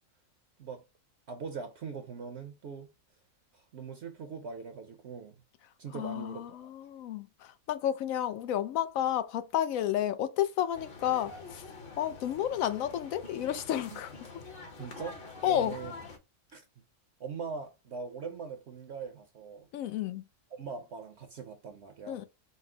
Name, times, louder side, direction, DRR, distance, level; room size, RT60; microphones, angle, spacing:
voice 1, 1.3-2.9 3.5-5.3 5.8-6.7 13.9-14.0 14.8-15.2 15.4-15.9 16.5-16.7 17.2-19.7 20.5-22.2, right 5 dB, 65° right, 0.8 m, -41 dB
voice 2, 5.9-11.6 12.0-14.1 15.4-15.7 19.7-20.2 22.1-22.2, left 11 dB, 80° left, 1.0 m, -31 dB
sound 1, 10.7-16.2, left 3 dB, 45° left, 1.0 m, -46 dB
5.3 x 2.0 x 3.7 m
omnidirectional pair, 1.4 m